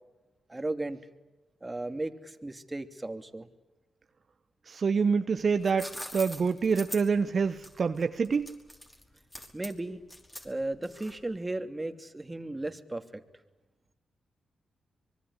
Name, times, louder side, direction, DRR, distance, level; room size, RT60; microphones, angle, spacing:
voice 1, 0.5-1.0 1.6-3.5 9.5-10.0 10.4-13.2, right 2 dB, 20° right, 8 dB, 2.9 m, -35 dB
voice 2, 4.7-8.6, right 5 dB, 55° right, 10 dB, 1.1 m, -27 dB
sound 1, 5.4-11.4, left 1 dB, 15° left, 5.3 m, -43 dB
25.0 x 22.5 x 9.9 m, 1.1 s
supercardioid pair, 55°, 0 cm